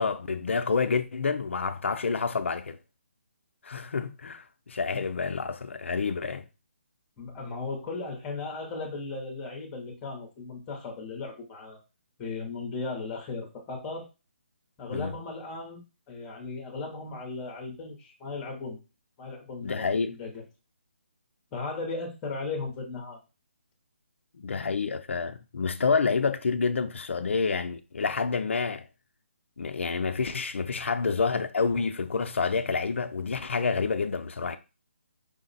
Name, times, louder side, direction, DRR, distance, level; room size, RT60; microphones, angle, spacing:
voice 1, 0.0-2.8 3.6-6.5 14.9-15.1 19.6-20.1 24.4-28.9 29.6-34.6, left 5 dB, 70° left, 0.4 m, -28 dB
voice 2, 7.2-11.8 12.2-14.1 14.8-18.8 19.2-20.4 21.5-23.2, left 3 dB, 10° left, 0.7 m, -36 dB
5.0 x 2.0 x 3.9 m
hypercardioid pair, 170°, 7 cm